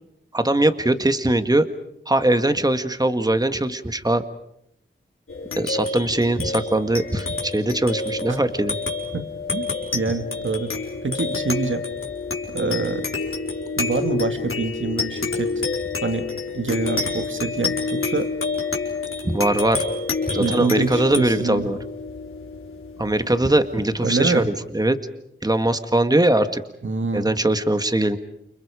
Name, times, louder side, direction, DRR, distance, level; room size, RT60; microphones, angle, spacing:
voice 1, 0.3-1.6 2.1-4.2 5.5-8.8 19.2-19.8 20.3-21.8 23.0-24.4 24.7-25.0 25.4-26.6 27.1-28.2, right 1 dB, 20° right, 8 dB, 1.8 m, -21 dB
sound 1, 5.3-24.1, left 4 dB, 85° left, 4.5 m, -28 dB
voice 2, 9.1-10.7 11.0-11.8 12.5-13.1 13.8-15.5 16.0-16.3 16.5-18.3 20.3-21.7 24.0-24.5 26.8-27.3, right 3 dB, 70° right, 7 dB, 2.3 m, -26 dB
29.5 x 29.0 x 5.1 m, 0.77 s
wide cardioid pair, 55°, 21 cm